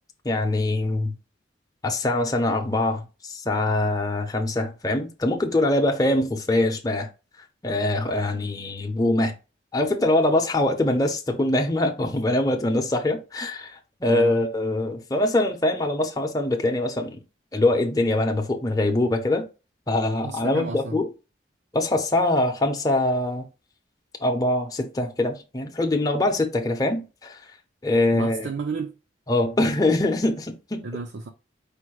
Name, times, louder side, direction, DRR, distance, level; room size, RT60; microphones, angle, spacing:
voice 1, 0.2-1.2 1.8-7.1 7.6-9.3 9.7-17.2 17.5-19.5 19.9-21.1 21.7-23.5 24.2-27.4 27.8-28.5 29.3-30.8, left 2 dB, 20° left, 0.7 m, -23 dB
voice 2, 14.1-14.4 20.2-21.0 28.1-28.9 30.8-31.3, right 4 dB, 70° right, 0.5 m, -32 dB
5.0 x 2.1 x 4.6 m
head